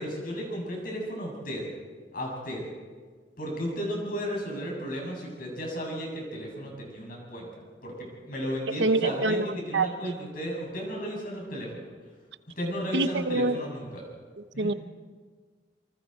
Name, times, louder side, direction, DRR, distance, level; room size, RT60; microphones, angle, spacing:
voice 1, 0.0-1.6 2.1-2.6 3.4-7.5 7.8-11.8 12.6-14.0 14.5-14.8, equal, 55° left, -1 dB, 7.4 m, -34 dB
voice 2, 8.8-9.5 9.7-9.9 12.9-13.6 14.6-14.7, right 3 dB, 75° right, 11 dB, 0.9 m, -25 dB
27.5 x 25.0 x 4.5 m, 1.5 s
head